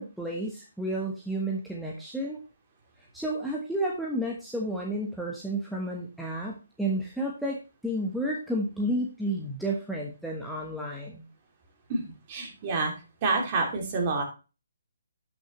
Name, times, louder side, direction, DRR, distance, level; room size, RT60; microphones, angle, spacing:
voice 1, 0.0-2.4 3.1-7.6 7.8-11.2, right 1 dB, ahead, -3 dB, 1.2 m, -31 dB
voice 2, 12.3-12.9 13.2-14.2, right 3 dB, 35° right, 1 dB, 2.8 m, -27 dB
11.5 x 6.0 x 3.2 m, 0.31 s
figure-of-eight pair, 145°, 0 cm